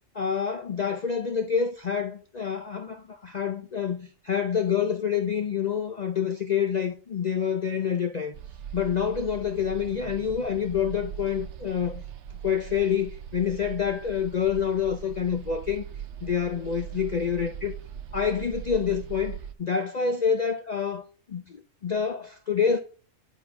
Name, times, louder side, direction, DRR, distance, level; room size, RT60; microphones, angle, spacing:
voice 1, 0.1-8.3 8.7-12.0 12.4-15.9 16.2-17.7 18.1-21.0 21.3-22.8, left 7 dB, 60° left, 0.4 m, -27 dB
sound 1, 8.3-19.5, right 9 dB, 65° right, 0.9 m, -40 dB
8.5 x 5.3 x 4.7 m
omnidirectional pair, 1.4 m